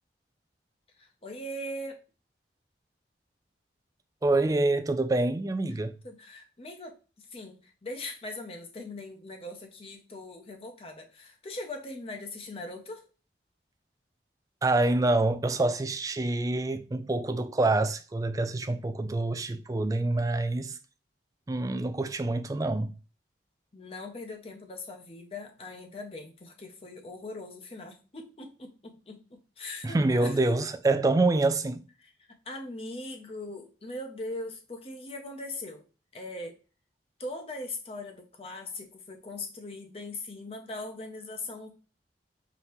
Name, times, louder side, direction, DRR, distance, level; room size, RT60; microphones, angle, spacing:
voice 1, 1.0-2.0 5.7-13.1 23.7-30.4 32.0-35.8 36.1-36.6 37.2-41.7, left 2 dB, 35° left, 0.6 m, -40 dB
voice 2, 4.2-5.9 14.6-20.8 21.5-22.9 29.8-31.8, right 2 dB, 20° right, 0.3 m, -26 dB
5.0 x 2.8 x 3.0 m
head